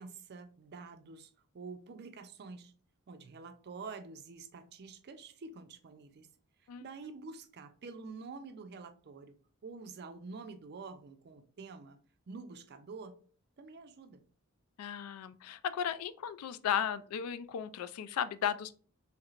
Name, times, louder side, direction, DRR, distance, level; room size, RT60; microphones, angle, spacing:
voice 1, 0.0-2.7 3.1-6.3 6.8-9.4 9.6-12.0 12.3-13.1 13.6-14.2, right 4 dB, 50° right, 0.4 m, -47 dB
voice 2, 14.8-18.8, left 9 dB, 80° left, 0.3 m, -35 dB
3.1 x 3.1 x 2.4 m
head